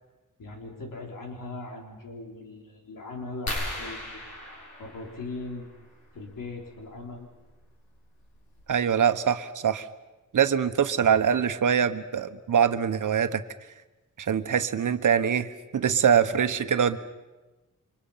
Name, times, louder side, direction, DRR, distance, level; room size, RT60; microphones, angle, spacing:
voice 1, 0.4-4.3 4.8-5.7 6.1-7.3, left 3 dB, 90° left, 2 dB, 4.0 m, -39 dB
sound 1, 3.5-5.8 7.4-7.6 8.2-8.3 8.6-8.8, left 1 dB, 60° left, 7.9 m, -36 dB
voice 2, 8.7-9.8 10.3-13.4 14.3-17.0, right 7 dB, 70° right, 10 dB, 1.2 m, -23 dB
29.0 x 25.5 x 5.7 m, 1.1 s
wide cardioid pair, 170°, 32 cm